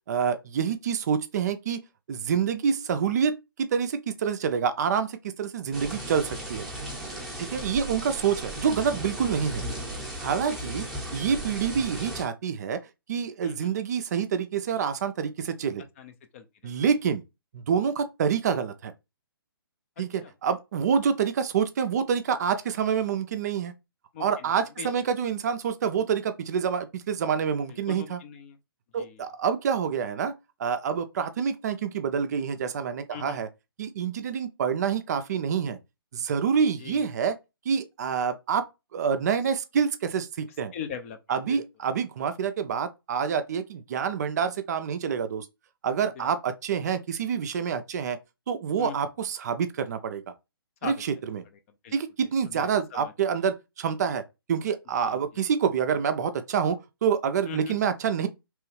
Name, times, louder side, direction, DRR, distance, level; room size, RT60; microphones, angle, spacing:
voice 1, 0.1-1.8 2.1-6.7 7.4-9.6 10.2-10.9 11.1-12.8 13.1-15.8 16.6-17.2 17.5-18.9 20.0-23.7 24.2-28.2 28.9-30.3 30.6-33.5 33.8-35.8 36.1-37.4 37.7-38.6 38.9-40.7 41.3-45.5 45.8-48.2 48.5-50.3 50.8-51.4 51.9-54.2 54.5-58.3, right 7 dB, 45° right, 0.4 m, -27 dB
sound 1, 5.7-12.2, right 1 dB, ahead, 0.7 m, -36 dB
voice 2, 16.0-16.4 20.2-20.3 24.1-24.5 24.8-24.9 27.7-28.6 29.0-29.2 33.1-33.4 36.8-37.1 40.7-41.2 41.5-41.6 46.2-46.3 48.8-49.1 50.8-50.9 51.8-51.9 52.4-53.1 55.0-55.2 57.5-57.8, left 7 dB, 35° left, 0.4 m, -40 dB
3.0 x 2.2 x 3.1 m
figure-of-eight pair, 135°, 12 cm